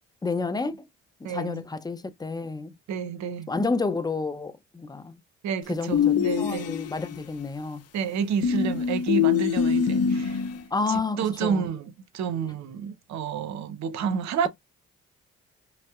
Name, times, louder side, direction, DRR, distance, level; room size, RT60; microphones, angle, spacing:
voice 1, 0.2-0.8 1.2-2.7 3.5-5.2 5.7-7.8 10.7-11.6, left 3 dB, 15° left, 0.6 m, -30 dB
voice 2, 1.2-1.6 2.9-3.5 5.4-6.7 7.9-10.4 10.9-14.5, right 7 dB, 70° right, 0.8 m, -30 dB
sound 1, 5.9-7.2 8.4-10.6, left 7 dB, 55° left, 0.6 m, -24 dB
5.2 x 2.0 x 2.4 m
supercardioid pair, 55°, 29 cm